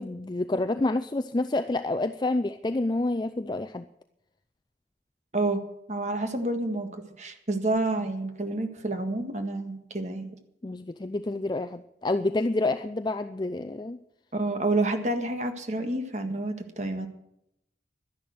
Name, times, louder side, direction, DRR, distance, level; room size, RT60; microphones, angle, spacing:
voice 1, 0.0-3.8 10.6-14.0, left 2 dB, 25° left, 8 dB, 0.4 m, -28 dB
voice 2, 5.9-10.3 14.3-17.1, right 2 dB, 40° right, 6 dB, 1.7 m, -29 dB
12.0 x 11.0 x 7.8 m, 0.81 s
head